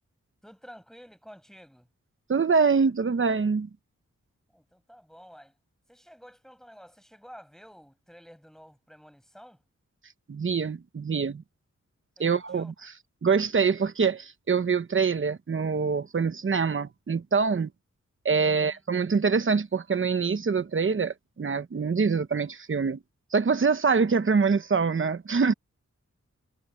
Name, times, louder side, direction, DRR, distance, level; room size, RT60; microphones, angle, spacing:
voice 1, 0.4-1.9 4.5-5.6 5.9-9.6 12.2-12.7 18.4-19.2, equal, ahead, 6.6 m, -51 dB
voice 2, 2.3-3.7 10.3-11.4 12.2-12.9 13.2-17.7 18.2-23.0 23.3-25.5, right 5 dB, 45° right, 1.0 m, -25 dB
wide cardioid pair, 135°, 29 cm